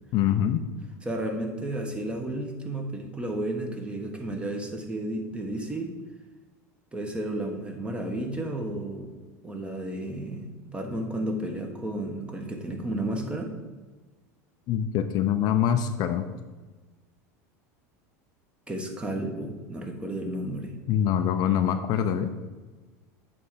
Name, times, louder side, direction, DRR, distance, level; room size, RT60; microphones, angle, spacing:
voice 1, 0.1-0.6 14.7-16.3 20.9-22.3, left 9 dB, 50° left, 8 dB, 0.6 m, -24 dB
voice 2, 1.0-5.9 6.9-9.1 9.4-13.5 18.7-20.7, right 1 dB, 15° right, 3 dB, 1.3 m, -32 dB
8.4 x 3.5 x 5.8 m, 1.3 s
supercardioid pair, 105°, 8 cm